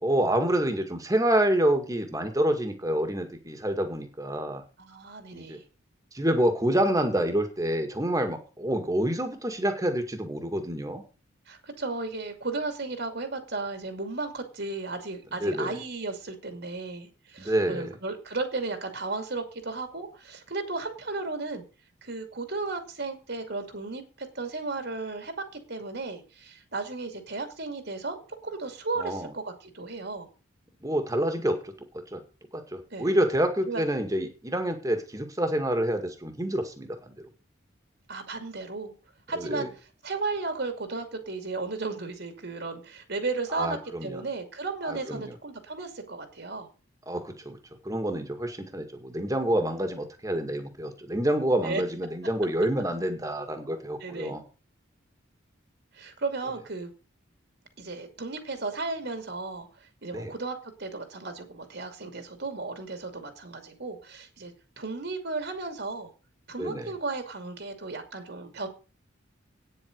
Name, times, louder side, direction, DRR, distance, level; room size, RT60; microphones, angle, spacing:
voice 1, 0.0-4.6 5.3-5.6 6.1-11.0 15.4-15.8 17.4-17.9 29.0-29.3 30.8-31.7 32.1-32.2 32.5-37.3 39.4-39.7 43.5-44.2 44.9-45.3 47.1-47.6 47.8-54.4 60.1-60.3 66.6-66.9, right 1 dB, 15° right, 6 dB, 2.0 m, -27 dB
voice 2, 4.8-5.6 11.5-21.6 22.0-28.2 28.4-30.3 32.9-33.1 33.7-33.8 38.1-38.9 39.3-39.7 40.0-46.7 51.6-51.8 54.0-54.3 55.9-56.9 57.8-66.1 66.5-68.7, right 3 dB, 55° right, 7 dB, 2.5 m, -34 dB
9.6 x 7.9 x 6.6 m, 0.34 s
head